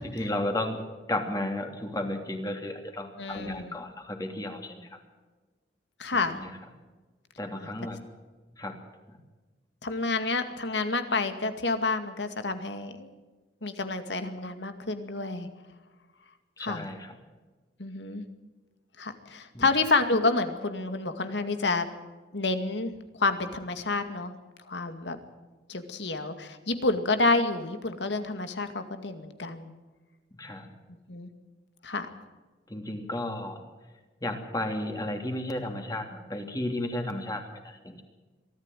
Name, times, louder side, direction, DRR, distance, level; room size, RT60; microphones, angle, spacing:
voice 1, 0.1-0.8 1.1-5.0 6.3-6.5 7.4-8.0 8.6-8.8 16.6-17.1 19.5-19.7 30.4-30.7 32.7-33.6 34.2-38.0, left 1 dB, 20° left, 4 dB, 2.9 m, -33 dB
voice 2, 3.2-3.7 6.0-6.4 9.8-13.1 13.6-15.5 16.6-16.9 17.8-18.2 19.0-21.9 22.3-24.3 24.7-25.2 25.7-29.7 31.1-31.3 31.8-32.1, left 3 dB, 75° left, 9 dB, 2.2 m, -29 dB
23.5 x 13.5 x 9.1 m, 1.3 s
head